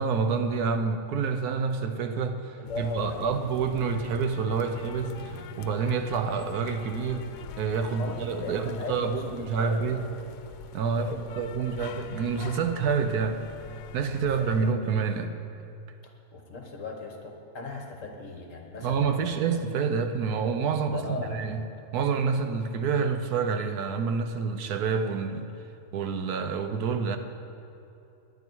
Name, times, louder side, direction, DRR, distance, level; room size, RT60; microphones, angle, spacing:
voice 1, 0.0-7.2 7.6-10.0 10.7-13.5 13.9-15.3 18.8-21.7 21.9-25.5 25.9-27.2, right 5 dB, 75° right, 8 dB, 1.3 m, -28 dB
sound 1, 2.6-14.7, left 8 dB, 80° left, 1.2 m, -44 dB
voice 2, 2.6-3.5 8.0-10.1 11.0-11.3 11.6-11.8 14.2-14.7 16.0-19.3 20.8-21.5, left 3 dB, 55° left, 2 dB, 1.7 m, -38 dB
19.0 x 9.9 x 4.6 m, 2.7 s
omnidirectional pair, 1.7 m